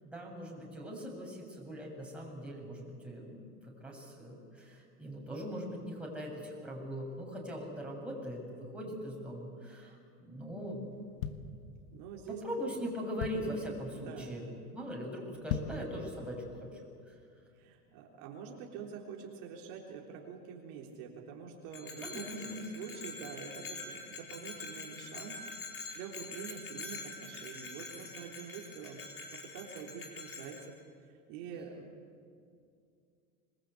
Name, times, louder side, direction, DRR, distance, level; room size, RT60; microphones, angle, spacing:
voice 1, 0.0-11.6 12.3-14.4 14.7-16.8 17.1-17.2 22.0-22.6, equal, ahead, -2 dB, 7.2 m, -41 dB
sound 1, 10.9-12.2 12.7-12.8 12.9-13.7 14.2-14.4 14.7-14.8 15.3-15.9 16.4-16.5, left 8 dB, 70° left, 1.7 m, -38 dB
voice 2, 11.9-12.4 13.9-14.3 17.6-29.0 29.3-30.8 31.0-32.0, right 6 dB, 55° right, 0 dB, 3.9 m, -46 dB
Bell, 21.7-30.7, left 3 dB, 25° left, 4.7 m, -45 dB
26.5 x 21.5 x 8.4 m, 2.4 s
hypercardioid pair, 110°, 46 cm